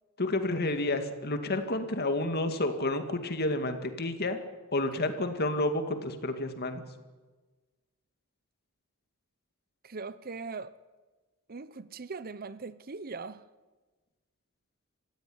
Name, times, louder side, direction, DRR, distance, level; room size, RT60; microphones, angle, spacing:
voice 1, 0.2-4.4 4.7-6.8, left 2 dB, 50° left, 2.3 m, -30 dB
voice 2, 9.8-10.7 11.5-13.4, right 4 dB, 45° right, 0.8 m, -40 dB
26.5 x 16.0 x 10.0 m
head